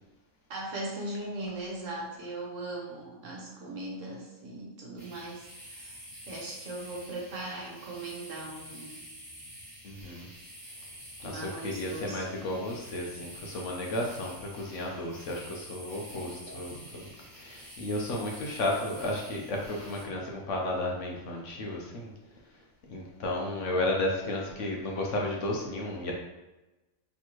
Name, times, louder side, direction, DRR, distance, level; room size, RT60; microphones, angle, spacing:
voice 1, 0.5-9.0 11.2-12.6 16.2-16.3, right 2 dB, 65° right, -3 dB, 1.3 m, -39 dB
sound 1, 5.0-20.0, equal, 40° right, 1.6 m, -48 dB
voice 2, 9.8-10.3 11.2-22.1 22.9-26.1, left 1 dB, 65° left, -1 dB, 1.0 m, -33 dB
4.4 x 3.4 x 3.0 m, 1.1 s
omnidirectional pair, 1.5 m